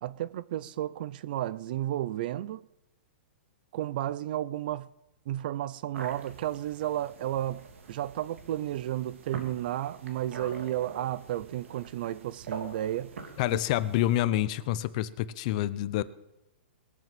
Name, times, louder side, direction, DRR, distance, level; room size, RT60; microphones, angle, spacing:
voice 1, 0.0-2.6 3.7-4.9 5.3-13.2 13.5-13.6, right 13 dB, 45° right, 0.5 m, -32 dB
sound 1, 5.9-14.2, right 5 dB, 80° right, 2.6 m, -45 dB
voice 2, 13.4-16.0, left 14 dB, 35° left, 0.6 m, -27 dB
21.0 x 7.5 x 7.7 m
hypercardioid pair, 165°, 7 cm